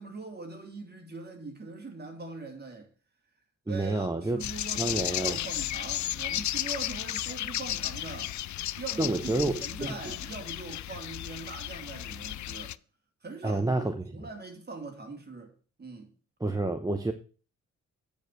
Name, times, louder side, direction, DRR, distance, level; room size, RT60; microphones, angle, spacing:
voice 1, 0.0-2.9 3.7-8.4 8.8-12.8 13.2-15.5 15.8-16.1, right 3 dB, 30° right, 3.0 m, -42 dB
voice 2, 3.7-4.4 4.8-5.4 9.0-9.9 13.4-14.0 16.4-17.1, right 2 dB, 10° right, 0.9 m, -29 dB
sound 1, 4.4-12.7, left 13 dB, 70° left, 0.4 m, -34 dB
9.0 x 5.2 x 7.7 m
cardioid pair, 95°, 31 cm